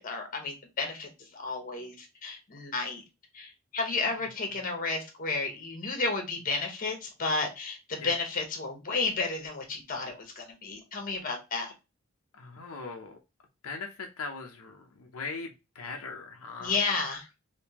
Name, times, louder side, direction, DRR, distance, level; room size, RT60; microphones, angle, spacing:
voice 1, 0.0-3.0 3.3-11.7 16.6-17.2, left 3 dB, 40° left, 3 dB, 1.1 m, -32 dB
voice 2, 12.4-13.2 13.6-16.8, left 4 dB, 80° left, 3 dB, 0.6 m, -40 dB
3.5 x 2.8 x 2.8 m, 0.26 s
head